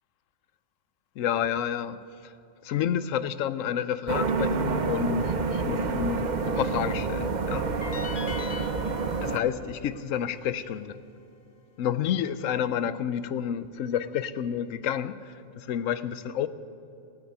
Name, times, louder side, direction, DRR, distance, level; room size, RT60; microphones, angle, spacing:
voice 1, 1.2-2.3 2.6-7.7 9.2-11.0 11.8-16.5, left 9 dB, 80° left, 15 dB, 1.0 m, -30 dB
sound 1, 4.1-9.4, right 4 dB, 45° right, 0.7 m, -28 dB
sound 2, 7.8-11.0, left 5 dB, 35° left, 0.7 m, -43 dB
16.0 x 8.7 x 8.9 m, 2.7 s
omnidirectional pair, 1.3 m